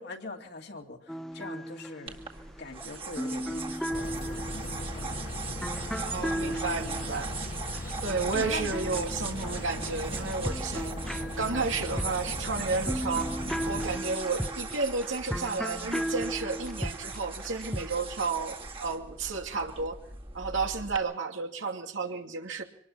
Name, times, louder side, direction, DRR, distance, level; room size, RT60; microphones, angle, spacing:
voice 1, 0.0-2.2 2.6-5.2 6.4-6.8 8.3-8.7, left 2 dB, 60° left, 2 dB, 2.5 m, -42 dB
sound 1, 1.1-9.9 10.2-18.0, equal, ahead, 0.8 m, -36 dB
sound 2, 2.1-21.0, right 4 dB, 30° right, 2.1 m, -40 dB
sound 3, 3.9-14.0, left 1 dB, 40° left, 1.4 m, -38 dB
voice 2, 6.0-7.3 8.0-13.3 13.7-20.0 20.3-22.6, right 4 dB, 90° right, 3 dB, 2.6 m, -32 dB
25.0 x 19.5 x 5.7 m, 0.66 s
head